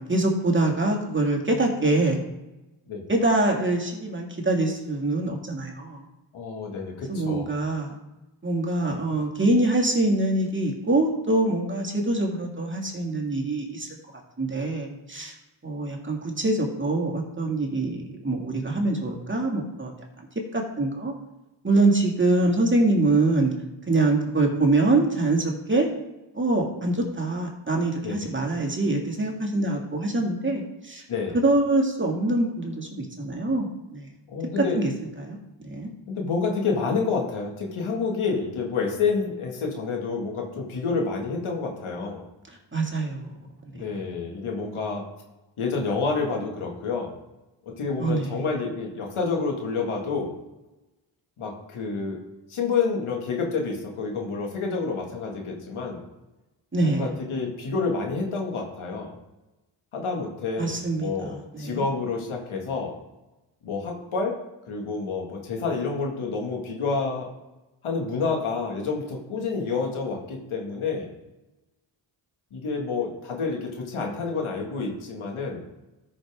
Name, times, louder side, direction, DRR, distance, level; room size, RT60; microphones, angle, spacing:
voice 1, 0.0-2.2 3.1-6.1 7.1-8.0 8.4-13.9 14.4-15.3 15.6-19.9 20.5-21.1 21.6-23.5 23.9-25.9 26.3-31.0 31.3-34.1 34.6-34.9 35.2-35.4 35.6-35.9 42.7-43.3 48.0-48.4 56.7-57.1 60.6-61.9, right 2 dB, 25° right, 0 dB, 2.3 m, -24 dB
voice 2, 6.3-7.5 28.0-28.1 31.1-31.4 34.3-34.8 36.1-42.2 43.7-45.0 45.6-47.1 47.6-50.3 51.4-52.2 52.5-56.1 56.8-59.1 59.9-63.0 63.6-64.4 64.7-67.3 67.8-71.1 72.5-75.6, left 4 dB, 90° left, 0 dB, 2.2 m, -28 dB
13.0 x 6.1 x 3.7 m, 1.0 s
cardioid pair, 65°, 48 cm